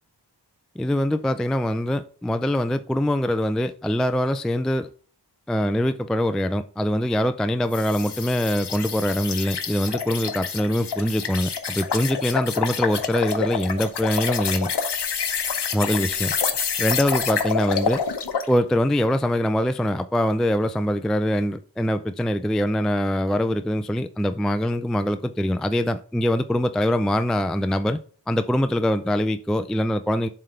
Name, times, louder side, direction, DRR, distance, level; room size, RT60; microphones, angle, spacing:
voice 1, 0.8-4.9 5.5-14.7 15.7-16.3 16.8-18.0 18.5-28.0 28.3-30.3, equal, ahead, 11 dB, 0.3 m, -23 dB
sound 1, 7.7-18.5, left 6 dB, 75° left, 0.9 m, -27 dB
7.4 x 3.4 x 5.6 m, 0.41 s
wide cardioid pair, 80°, 41 cm